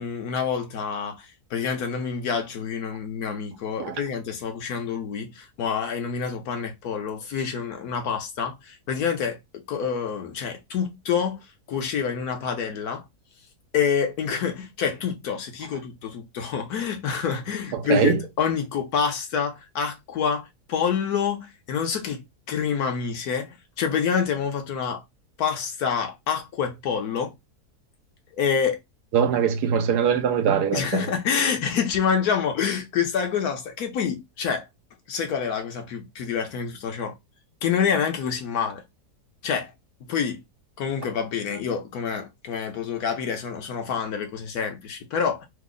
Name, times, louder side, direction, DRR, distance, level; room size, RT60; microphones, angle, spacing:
voice 1, 0.0-11.4 11.7-13.0 13.7-25.0 25.4-27.3 28.3-28.8 30.7-34.7 35.1-37.2 37.6-38.8 39.4-39.7 40.0-40.4 40.8-45.5, left 7 dB, 70° left, 1.4 m, -27 dB
voice 2, 17.7-18.2 29.1-31.1, right 7 dB, 90° right, 1.3 m, -22 dB
3.5 x 2.1 x 3.7 m
omnidirectional pair, 1.7 m